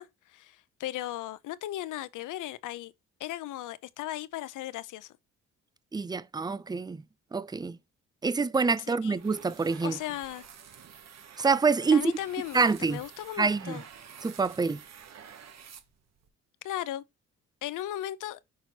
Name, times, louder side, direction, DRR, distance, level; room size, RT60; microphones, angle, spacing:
voice 1, 0.0-2.9 3.2-5.1 8.9-9.2 9.8-10.4 11.9-13.8 16.6-17.0 17.6-18.4, left 13 dB, 70° left, 0.7 m, -36 dB
voice 2, 5.9-7.0 7.3-7.8 8.2-10.0 11.4-12.1 12.5-13.0 13.4-13.8 14.2-14.8, right 4 dB, 15° right, 0.5 m, -26 dB
sound 1, 9.2-16.3, right 8 dB, 55° right, 1.3 m, -49 dB
6.2 x 4.3 x 4.1 m
supercardioid pair, 75°, 32 cm